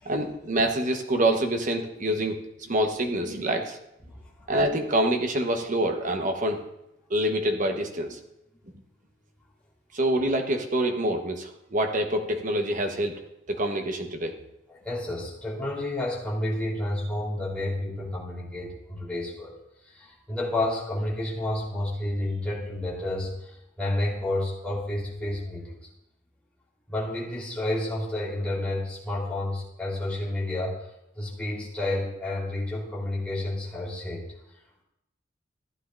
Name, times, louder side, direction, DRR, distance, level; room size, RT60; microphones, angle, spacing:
voice 1, 0.1-2.4 2.7-3.8 4.5-6.6 7.1-8.2 9.9-13.1 13.5-14.3, right 1 dB, 40° right, 4 dB, 1.1 m, -26 dB
voice 2, 14.7-19.5 19.9-25.6 26.9-30.7 31.2-34.3, left 1 dB, 5° left, -7 dB, 3.5 m, -30 dB
15.0 x 9.7 x 2.6 m, 0.81 s
head